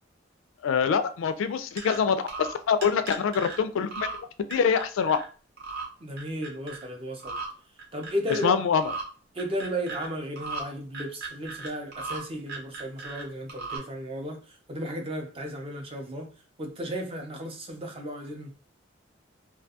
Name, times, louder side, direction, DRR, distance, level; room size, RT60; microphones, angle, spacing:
voice 1, 0.6-4.1 4.5-5.2 8.4-8.8, left 6 dB, 85° left, 0.3 m, -25 dB
sound 1, 1.8-2.0 2.3-2.6 2.8-3.6 3.9-4.2 4.5-5.2 5.6-5.9 6.2-6.8 7.2-7.5 7.8-8.5 8.8-9.0 9.4-10.1 10.4-10.6 10.9-12.2 12.5-13.2 13.5-13.8, right 4 dB, 55° right, 0.8 m, -36 dB
voice 2, 6.0-7.4 7.9-8.6 9.3-16.3 16.6-18.5, equal, 30° right, 0.5 m, -34 dB
2.3 x 2.2 x 2.7 m
head